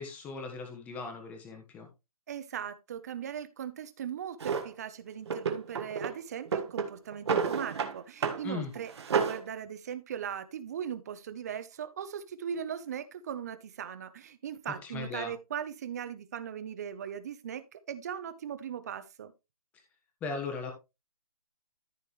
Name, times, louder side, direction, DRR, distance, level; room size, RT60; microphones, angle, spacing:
voice 1, 0.0-1.9 8.4-8.7 14.8-15.3 20.2-20.7, left 4 dB, 10° left, 1.2 m, -38 dB
voice 2, 2.3-19.3, right 8 dB, 25° right, 0.8 m, -39 dB
Drawer open or close, 4.4-4.7 5.3-6.1 6.4-7.9 8.2-8.4 8.7-9.4, right 6 dB, 45° right, 1.6 m, -30 dB
14.0 x 5.1 x 3.1 m
hypercardioid pair, 170°, 19 cm